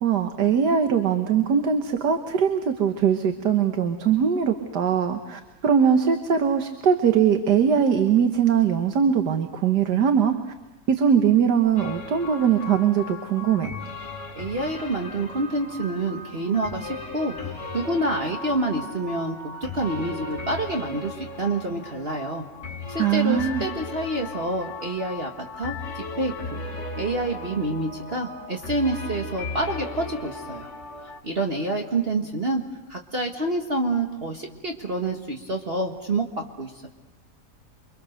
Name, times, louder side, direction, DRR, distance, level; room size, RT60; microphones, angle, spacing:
voice 1, 0.0-10.3 10.9-13.7 23.0-23.6, right 7 dB, 90° right, 6 dB, 1.8 m, -21 dB
sound 1, 11.8-31.2, left 3 dB, 45° left, 2.4 m, -37 dB
voice 2, 14.4-19.4 19.7-22.5 22.9-25.3 25.6-26.7 27.0-30.7 31.2-32.6 32.9-36.9, right 2 dB, 35° right, 2 dB, 1.8 m, -27 dB
29.5 x 24.5 x 6.6 m, 1.1 s
omnidirectional pair, 1.7 m